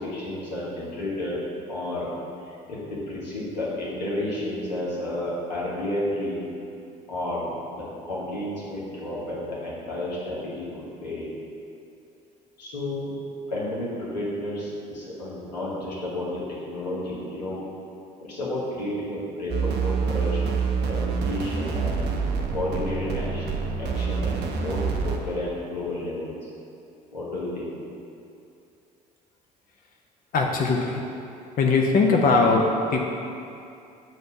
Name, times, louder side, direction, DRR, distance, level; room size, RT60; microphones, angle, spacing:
voice 1, 0.0-1.4 1.7-2.1 2.4-6.4 7.1-10.7 11.0-11.3 12.6-13.1 13.5-17.6 18.2-20.4 20.9-22.0 22.5-23.5 23.8-24.3 24.6-26.5 27.1-27.7, left 1 dB, 85° left, -6 dB, 1.2 m, -31 dB
sound 1, 19.5-25.2, right 5 dB, 50° right, 0.7 m, -27 dB
voice 2, 30.3-31.0 31.6-33.0, left 3 dB, 40° left, 1 dB, 0.6 m, -20 dB
7.8 x 2.6 x 5.4 m, 2.6 s
hypercardioid pair, 55°, 21 cm